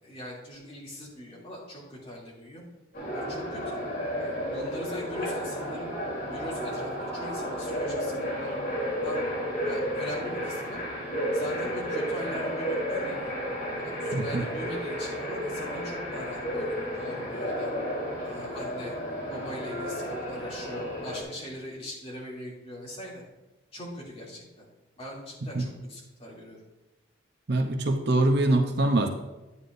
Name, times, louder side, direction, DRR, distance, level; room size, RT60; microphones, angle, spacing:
voice 1, 0.0-2.6 3.1-3.8 4.2-6.0 6.3-8.6 9.0-9.3 9.6-10.8 11.3-13.3 13.8-17.7 18.2-19.0 19.3-23.2 23.7-24.6 25.0-26.6, equal, 30° left, -6 dB, 2.8 m, -40 dB
sound 1, 2.9-21.2, equal, 45° left, 3.3 m, -32 dB
voice 2, 14.1-14.4 25.5-25.7 27.5-29.1, right 2 dB, 50° right, 5 dB, 0.7 m, -24 dB
9.7 x 9.6 x 2.6 m, 1.0 s
head